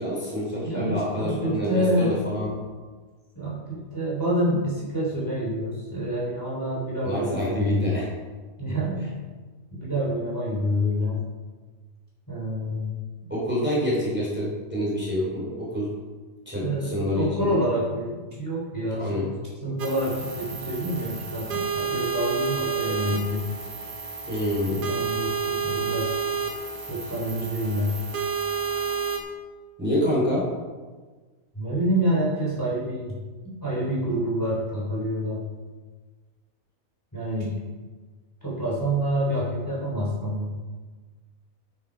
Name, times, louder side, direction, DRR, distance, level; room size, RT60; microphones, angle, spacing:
voice 1, 0.0-2.5 7.0-8.1 13.3-15.9 16.5-17.5 18.9-19.3 24.3-25.0 29.8-30.5, equal, 5° right, -6 dB, 3.4 m, -27 dB
voice 2, 0.6-2.3 3.3-7.9 8.6-9.1 9.7-11.2 12.3-13.0 16.6-19.3 19.6-23.5 24.6-26.1 26.9-28.0 31.5-33.1 33.6-35.4 37.1-37.6 38.4-40.6, equal, 15° left, -7 dB, 3.6 m, -27 dB
sound 1, 19.8-29.2, right 5 dB, 85° right, 1.9 m, -30 dB
9.3 x 9.1 x 5.2 m, 1.4 s
omnidirectional pair, 1.5 m